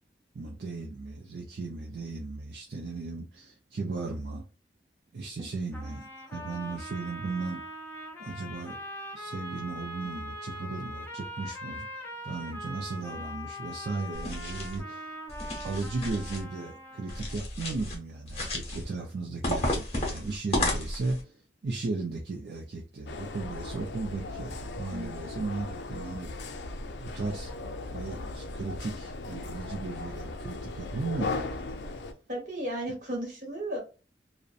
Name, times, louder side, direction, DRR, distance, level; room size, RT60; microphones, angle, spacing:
voice 1, 0.3-4.4 5.1-7.6 8.2-8.8 9.1-11.9 12.2-15.1 15.6-26.6 27.0-27.5 27.9-31.8, right 3 dB, 65° right, 0.4 m, -36 dB
sound 1, 5.7-17.4, left 1 dB, 10° left, 0.5 m, -42 dB
sound 2, 14.1-14.8 15.3-16.4 17.1-18.0 18.3-18.8 19.4-21.2, left 1 dB, 35° left, 0.8 m, -32 dB
sound 3, 23.1-32.1, left 3 dB, 80° left, 0.4 m, -37 dB
voice 2, 32.3-33.8, right 1 dB, 45° right, 1.1 m, -34 dB
2.6 x 2.1 x 2.4 m
head